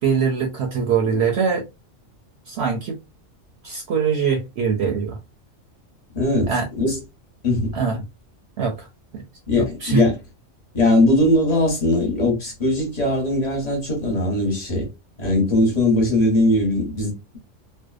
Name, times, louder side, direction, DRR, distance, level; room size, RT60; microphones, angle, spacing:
voice 1, 0.0-1.6 2.5-3.0 3.6-5.2 6.5-6.7 7.7-8.1 8.6-8.9 9.8-10.0, right 6 dB, 65° right, 0.7 m, -22 dB
voice 2, 6.1-6.5 6.8-7.0 7.4-7.7 9.5-10.2 10.7-14.9 15.2-17.4, left 1 dB, 35° left, 0.9 m, -20 dB
2.6 x 2.1 x 2.3 m
omnidirectional pair, 1.4 m